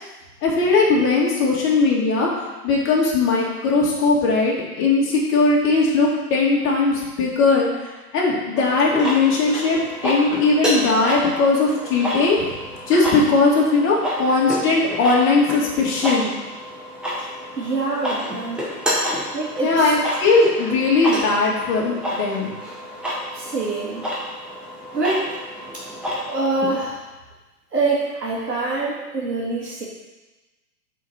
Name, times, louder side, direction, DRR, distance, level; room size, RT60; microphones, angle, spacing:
voice 1, 0.4-2.3 2.6-7.7 8.1-12.5 12.9-16.3 19.6-22.5, left 3 dB, 25° left, -3 dB, 1.8 m, -19 dB
sound 1, 8.6-26.9, equal, ahead, 0.5 m, -29 dB
voice 2, 17.6-18.7 19.3-19.9 23.3-24.0 24.9-25.4 25.7-25.9 26.3-27.0 27.7-29.8, right 3 dB, 85° right, -4 dB, 2.3 m, -25 dB
5.6 x 4.2 x 6.1 m, 1.1 s
figure-of-eight pair, 110°, 47 cm